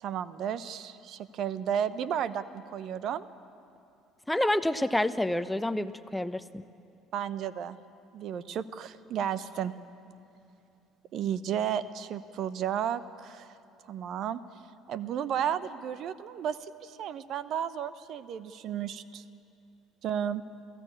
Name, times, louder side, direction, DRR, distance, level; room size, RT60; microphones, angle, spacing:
voice 1, 0.0-3.3 7.1-7.8 8.1-9.7 11.1-13.5 13.9-19.2 20.0-20.4, right 9 dB, 55° right, 15 dB, 0.8 m, -33 dB
voice 2, 4.3-6.6, left 1 dB, 10° left, 13 dB, 0.9 m, -28 dB
30.0 x 16.0 x 8.6 m, 2.7 s
hypercardioid pair, 60°, 0 cm